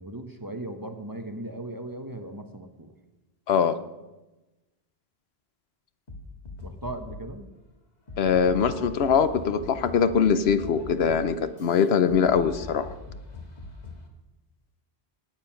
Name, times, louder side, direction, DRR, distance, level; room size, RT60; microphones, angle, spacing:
voice 1, 0.0-2.9 6.6-7.5, right 1 dB, 20° right, 6 dB, 0.9 m, -38 dB
voice 2, 3.5-3.8 8.2-12.9, left 6 dB, 75° left, 12 dB, 1.0 m, -22 dB
sound 1, 6.1-7.4 8.1-14.1, left 2 dB, 40° left, 1.8 m, -42 dB
19.0 x 7.6 x 5.9 m, 1.1 s
omnidirectional pair, 1.1 m